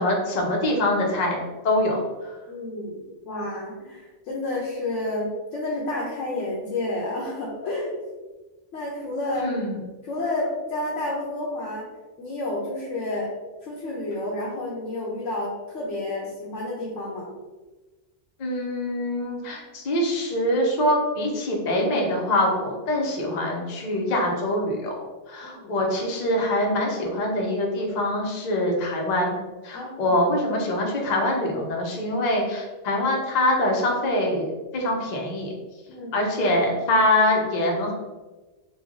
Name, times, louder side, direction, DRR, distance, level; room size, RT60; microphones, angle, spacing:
voice 1, 0.0-2.0 9.4-9.8 18.4-29.4 29.6-35.5 36.1-37.9, left 1 dB, 45° left, -1 dB, 0.7 m, -24 dB
voice 2, 2.5-7.9 8.7-9.5 10.0-11.9 12.2-13.3 13.6-17.3 25.4-25.9 29.7-30.1 35.9-36.3, left 2 dB, 75° left, -4 dB, 1.0 m, -30 dB
3.2 x 2.3 x 3.6 m, 1.2 s
omnidirectional pair, 1.3 m